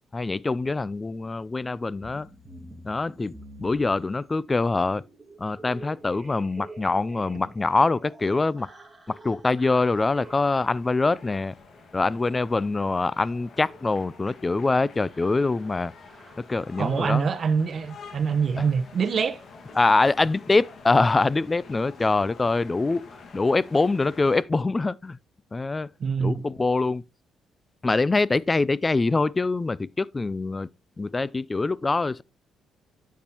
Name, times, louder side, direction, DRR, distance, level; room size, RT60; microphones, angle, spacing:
voice 1, 0.1-2.3 2.8-5.0 5.4-8.7 9.1-11.5 11.9-15.9 16.5-17.3 18.6-18.7 19.8-25.2 25.5-25.9 26.2-27.0 27.8-30.7 31.0-32.2, left 3 dB, 25° left, 0.4 m, -24 dB
sound 1, 2.0-17.4 18.1-18.4 18.6-18.9 19.1-19.3 19.6-19.8, right 2 dB, 15° right, 2.0 m, -49 dB
sound 2, 9.9-24.4, left 4 dB, 55° left, 1.8 m, -48 dB
voice 2, 16.8-19.4 26.0-26.4, right 6 dB, 50° right, 0.9 m, -25 dB
10.5 x 7.3 x 2.9 m
cardioid pair, 90°, 0 cm